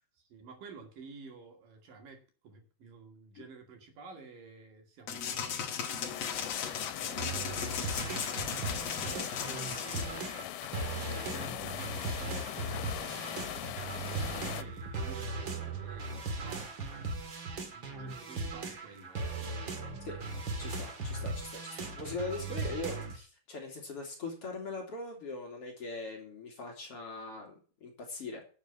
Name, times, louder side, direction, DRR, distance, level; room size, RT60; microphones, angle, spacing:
voice 1, 0.2-5.6 6.6-10.5 10.9-17.2 17.7-19.2, right 4 dB, 60° right, 3 dB, 3.8 m, -52 dB
sound 1, 5.1-10.1, left 7 dB, 55° left, 2.0 m, -36 dB
sound 2, 6.1-14.6, left 14 dB, 90° left, 2.7 m, -41 dB
sound 3, 7.2-23.2, right 3 dB, 40° right, 2.1 m, -38 dB
voice 2, 20.6-28.5, left 3 dB, 40° left, 0 dB, 3.3 m, -41 dB
11.5 x 7.1 x 8.4 m, 0.39 s
omnidirectional pair, 4.4 m